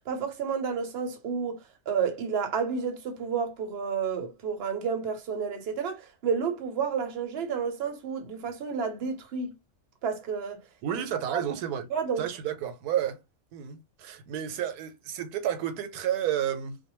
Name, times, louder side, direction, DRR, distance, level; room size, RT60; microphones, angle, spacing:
voice 1, 0.1-1.6 1.9-9.5 10.0-10.6 11.3-11.4 11.9-12.3, right 6 dB, 55° right, 0.8 m, -30 dB
voice 2, 10.8-11.9 12.2-13.2 13.5-16.8, right 10 dB, 85° right, 1.1 m, -31 dB
2.5 x 2.1 x 2.9 m
omnidirectional pair, 1.6 m